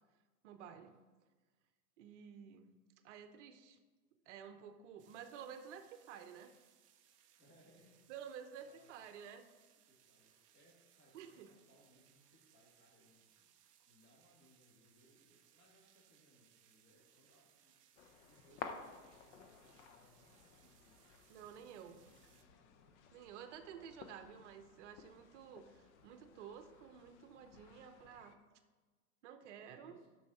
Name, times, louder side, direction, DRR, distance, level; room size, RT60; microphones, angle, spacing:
voice 1, 0.4-0.9 2.0-2.7 3.0-3.8 4.3-6.5 8.1-9.4 11.1-11.5 21.3-22.0 23.1-28.3 29.2-30.0, right 8 dB, 50° right, 8 dB, 0.8 m, -52 dB
sound 1, 5.0-22.4, right 10 dB, 25° right, 0.4 m, -70 dB
voice 2, 7.4-8.0 8.6-9.2 9.9-13.5 13.9-17.7 18.2-22.8 27.9-28.3 29.6-30.1, equal, 25° left, -3 dB, 2.8 m, -69 dB
sound 2, 18.0-28.4, left 6 dB, 50° left, 0.8 m, -55 dB
8.5 x 6.3 x 4.4 m, 1.3 s
hypercardioid pair, 130°, 46 cm